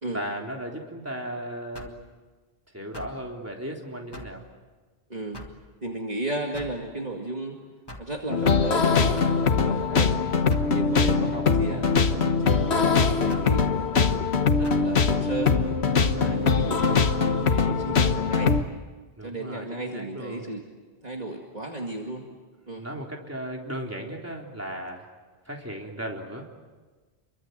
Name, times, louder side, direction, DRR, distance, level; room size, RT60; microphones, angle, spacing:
voice 1, 0.1-2.0 2.7-4.4 19.2-20.5 22.8-25.1 25.5-26.5, right 1 dB, 15° right, 0 dB, 3.6 m, -36 dB
sound 1, 1.7-2.1 2.9-3.2 4.1-4.4 5.3-5.6 6.5-6.8 7.9-8.2 9.2-9.4 10.5-10.7 11.8-12.1 13.3-13.5 14.6-14.9 16.0-16.2, left 1 dB, 25° left, 2.1 m, -42 dB
voice 2, 5.1-5.5 5.8-7.6 8.0-10.2 10.7-14.2 14.6-15.5 16.2-18.5 19.2-20.6 21.0-22.2 22.7-22.9, right 2 dB, 40° right, 0 dB, 2.3 m, -34 dB
sound 2, 8.3-18.6, left 5 dB, 85° left, 1.5 m, -22 dB
28.5 x 23.5 x 8.1 m, 1.3 s
omnidirectional pair, 1.1 m